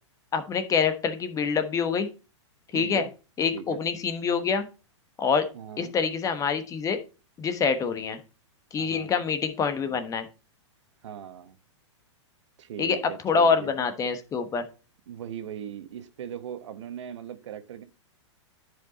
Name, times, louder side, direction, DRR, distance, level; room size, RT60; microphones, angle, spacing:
voice 1, 0.3-2.1 2.7-3.1 3.4-4.6 5.2-5.5 5.8-7.0 7.4-8.2 8.7-10.3 12.8-13.0 13.2-14.6, left 6 dB, 20° left, 9 dB, 1.1 m, -26 dB
voice 2, 2.7-3.1 3.5-3.8 5.5-5.9 8.7-9.1 11.0-11.6 12.6-13.7 15.1-17.8, right 9 dB, 70° right, 10 dB, 1.2 m, -39 dB
10.5 x 5.0 x 4.0 m, 0.32 s
hypercardioid pair, 125°, 16 cm